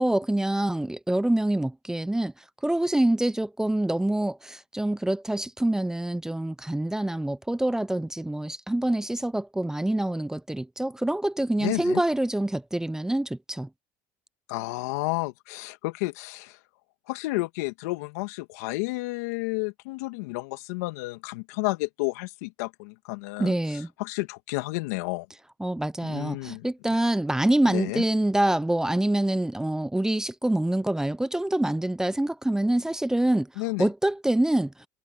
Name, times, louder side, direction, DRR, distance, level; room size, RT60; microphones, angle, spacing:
voice 1, 0.0-2.3 2.6-13.7 23.4-23.9 25.6-33.5 33.8-34.7, right 1 dB, 5° right, 0.8 m, -26 dB
voice 2, 11.6-12.0 14.5-16.6 17.1-25.3 26.0-27.1 27.6-28.0 33.6-33.9, left 23 dB, 80° left, 2.2 m, -31 dB
hypercardioid pair, 80°, 9 cm